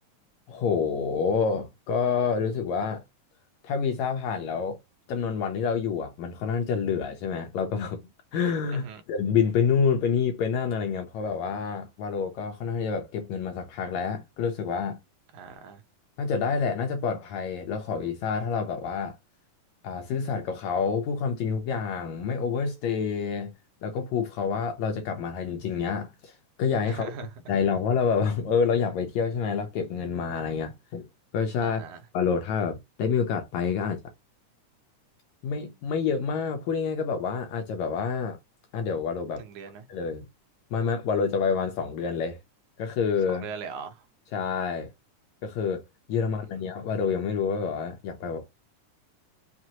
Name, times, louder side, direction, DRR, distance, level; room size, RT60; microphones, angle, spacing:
voice 1, 0.5-3.0 3.6-4.8 5.1-8.0 8.3-15.0 16.2-19.2 19.8-23.5 23.8-27.1 27.5-31.1 31.3-31.8 32.1-34.0 35.4-38.4 38.7-39.4 39.9-40.2 40.7-42.4 42.8-43.5 44.3-44.9 45.4-45.8 46.1-48.5, left 6 dB, 75° left, 1.7 m, -28 dB
voice 2, 8.7-9.0 15.3-15.8 26.9-27.3 31.6-32.0 39.4-39.9 43.3-44.1 46.2-46.6, right 6 dB, 75° right, 2.0 m, -40 dB
6.1 x 2.4 x 2.8 m
omnidirectional pair, 3.7 m